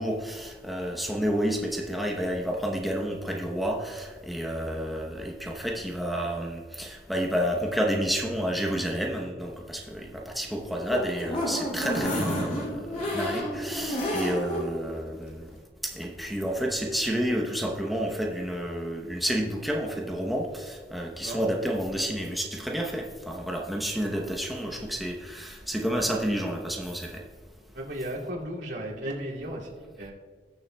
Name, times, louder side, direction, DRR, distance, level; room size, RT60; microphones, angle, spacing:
voice 1, 0.0-15.5 15.8-27.2, equal, ahead, 0 dB, 0.8 m, -30 dB
sound 1, 10.7-14.7 15.1-15.2 15.5-15.6, left 1 dB, 45° left, 2.7 m, -30 dB
voice 2, 27.7-30.1, right 1 dB, 85° right, -4 dB, 2.4 m, -35 dB
20.0 x 6.9 x 2.2 m, 1.5 s
head